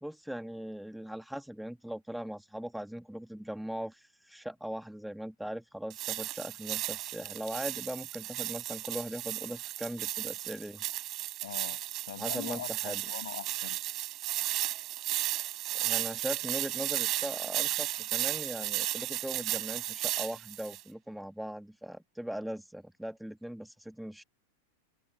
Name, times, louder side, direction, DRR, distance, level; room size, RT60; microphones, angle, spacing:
voice 1, 0.0-10.8 12.2-13.0 15.8-24.2, equal, ahead, 1.7 m, -40 dB
sound 1, 5.9-20.8, right 16 dB, 35° right, 5.3 m, -34 dB
voice 2, 11.4-13.8, left 12 dB, 60° left, 7.3 m, -43 dB
figure-of-eight pair, 90°, 0 cm